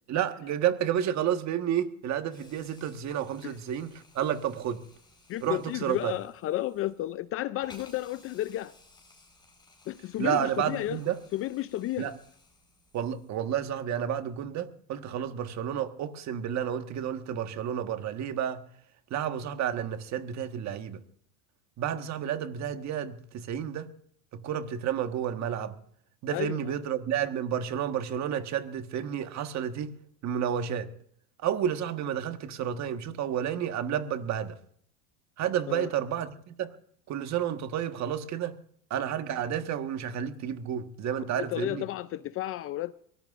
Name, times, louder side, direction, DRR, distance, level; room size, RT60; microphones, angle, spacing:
voice 1, 0.1-4.8 5.4-6.1 10.2-11.2 12.0-12.1 12.9-18.6 19.1-21.0 21.8-23.9 24.3-25.7 26.2-29.9 30.2-30.9 31.4-34.5 35.4-36.7 37.1-38.5 38.9-41.8, right 9 dB, 40° right, 1.5 m, -31 dB
Hiss, 2.3-13.6, left 3 dB, 10° left, 4.6 m, -58 dB
voice 2, 5.3-8.7 9.9-11.0 11.3-12.1 26.3-26.6 35.7-35.9 41.3-42.9, left 15 dB, 35° left, 0.5 m, -32 dB
23.0 x 18.0 x 2.5 m
supercardioid pair, 120°, 42 cm